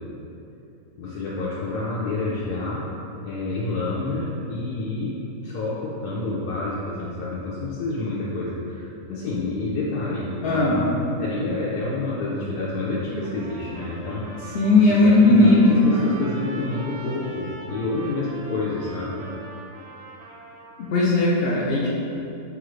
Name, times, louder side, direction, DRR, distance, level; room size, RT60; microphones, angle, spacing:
voice 1, 1.0-2.9 3.2-5.1 5.4-10.8 11.2-14.6 14.9-19.2, left 2 dB, 85° left, -7 dB, 1.2 m, -28 dB
voice 2, 10.4-10.8 14.5-16.0 20.8-21.9, left 2 dB, 70° left, -6 dB, 0.5 m, -17 dB
Trumpet, 13.2-21.0, right 2 dB, 70° right, 0.7 m, -42 dB
5.6 x 2.4 x 3.1 m, 2.8 s
omnidirectional pair, 1.6 m